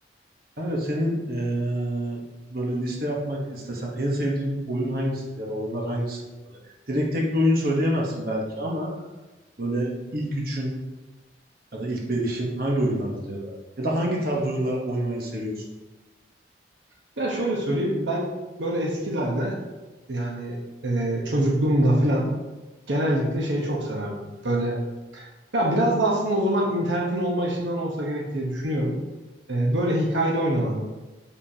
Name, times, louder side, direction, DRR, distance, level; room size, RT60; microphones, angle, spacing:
voice 1, 0.6-2.2 2.5-6.6 6.9-8.9 9.6-10.7 11.7-15.6, equal, 50° right, -2 dB, 1.1 m, -27 dB
voice 2, 17.2-18.3 18.6-19.6 20.1-20.6 20.8-22.3 22.9-24.8 25.1-28.9 29.5-30.8, right 1 dB, 80° right, -1 dB, 1.0 m, -24 dB
6.6 x 5.5 x 2.8 m, 1.1 s
head